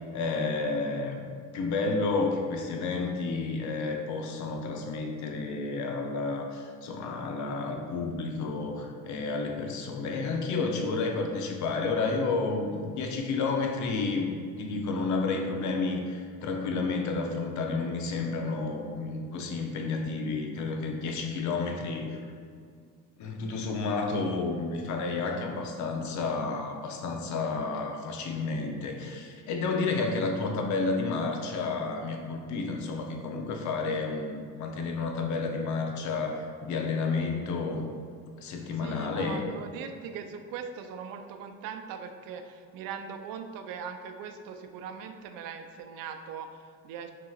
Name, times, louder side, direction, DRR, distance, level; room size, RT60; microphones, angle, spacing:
voice 1, 0.1-1.3 1.5-14.3 14.6-22.3 23.2-37.9 38.4-39.5, left 3 dB, 60° left, 2 dB, 0.7 m, -31 dB
voice 2, 38.8-47.1, right 6 dB, 85° right, 6 dB, 0.5 m, -40 dB
5.8 x 2.9 x 2.4 m, 2.2 s
cardioid pair, 115°, 33 cm